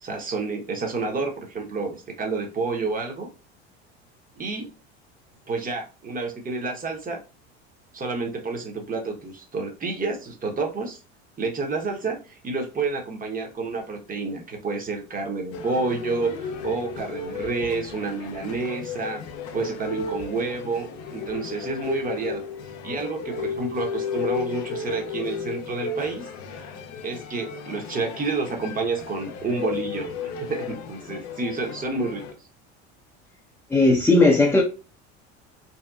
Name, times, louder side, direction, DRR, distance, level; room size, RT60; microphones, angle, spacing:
voice 1, 0.0-3.3 4.4-4.7 5.5-7.2 7.9-11.0 11.4-19.2 19.5-22.4 22.8-26.3 27.0-30.1 30.5-32.4, right 4 dB, 25° right, 0.9 m, -29 dB
sound 1, 15.5-32.3, left 5 dB, 55° left, 0.6 m, -34 dB
voice 2, 33.7-34.6, left 2 dB, 5° left, 0.6 m, -17 dB
2.8 x 2.2 x 2.3 m
hypercardioid pair, 85°, 33 cm